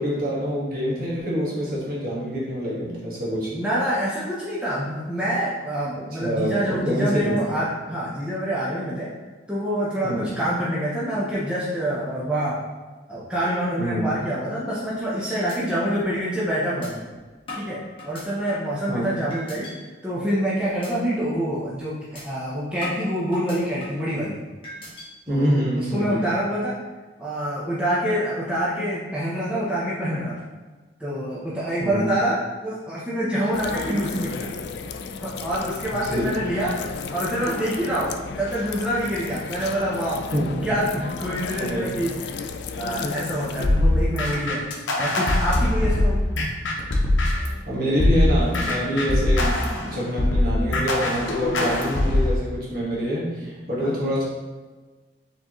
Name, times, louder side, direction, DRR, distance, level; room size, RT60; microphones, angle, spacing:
voice 1, 0.0-3.5 6.2-7.4 10.0-10.4 13.8-14.1 18.9-19.1 25.3-26.3 31.8-32.1 35.9-36.3 40.3-40.7 41.6-42.1 43.0-43.2 43.5-43.6 47.7-54.2, equal, 50° right, -6 dB, 1.4 m, -26 dB
voice 2, 3.5-9.1 9.5-12.6 13.1-17.0 17.5-24.4 25.3-26.8 27.2-30.4 31.0-34.5 35.2-40.2 40.6-42.2 42.7-44.6 45.0-46.3 53.8-54.0, equal, 5° right, -9 dB, 0.7 m, -26 dB
sound 1, 14.9-15.1 15.5-15.6 16.0-16.1 16.8-16.9 17.5-18.7 19.3-19.7 20.2-20.4 20.8-20.9 21.3-21.5 22.1-22.2 22.8-24.1 24.6-25.1, left 1 dB, 30° left, 1.4 m, -39 dB
sound 2, 33.5-43.7, left 5 dB, 60° left, 0.3 m, -34 dB
sound 3, 43.6-47.6 48.0-52.4, left 1 dB, 85° left, 0.7 m, -22 dB
4.7 x 3.7 x 3.0 m, 1.3 s
head